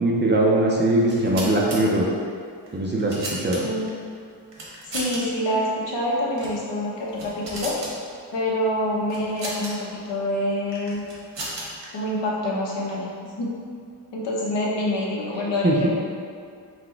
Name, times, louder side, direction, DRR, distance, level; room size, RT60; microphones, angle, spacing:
voice 1, 0.0-2.1 2.7-3.6 15.6-15.9, right 1 dB, 25° right, -3 dB, 0.4 m, -21 dB
sound 1, 1.0-1.8 2.7-3.9 4.5-5.2 5.5-5.6 6.3-6.6 7.0-7.9 9.1-9.7 10.7-11.9, right 2 dB, 75° right, 1.1 m, -34 dB
voice 2, 3.5-3.9 4.9-7.7 8.3-11.0 11.9-13.1 13.4-13.6 14.1-15.9, left 1 dB, 70° left, -3 dB, 0.9 m, -26 dB
4.0 x 2.1 x 4.4 m, 2.3 s
wide cardioid pair, 125°, 44 cm